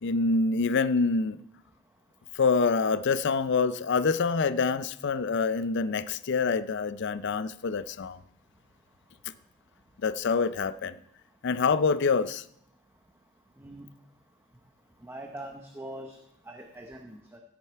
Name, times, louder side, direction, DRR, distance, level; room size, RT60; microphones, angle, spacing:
voice 1, 0.0-1.4 2.4-8.2 10.0-10.9 11.4-12.4, left 4 dB, 60° left, 15 dB, 0.5 m, -26 dB
voice 2, 15.0-16.2 16.5-17.4, right 1 dB, 10° right, 2 dB, 0.9 m, -42 dB
16.0 x 7.7 x 4.6 m, 0.76 s
head